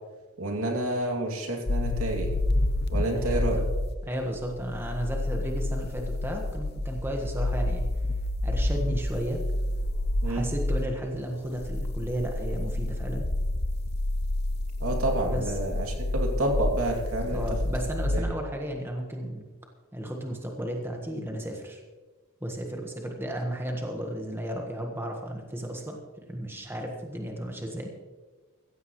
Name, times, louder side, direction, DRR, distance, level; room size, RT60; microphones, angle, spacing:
voice 1, 0.4-2.3 2.9-3.6 10.2-10.5 14.8-17.4 18.1-18.2, right 1 dB, 75° right, 1 dB, 2.7 m, -29 dB
sound 1, 1.7-10.8 11.5-18.2, left 1 dB, 45° left, 0.8 m, -29 dB
voice 2, 3.1-3.7 4.0-7.8 8.4-9.4 10.2-13.3 15.2-15.5 17.3-19.5 19.9-21.8 22.4-26.0 26.3-27.9, right 1 dB, 10° right, 1 dB, 1.4 m, -33 dB
16.0 x 15.0 x 3.2 m, 1.3 s
head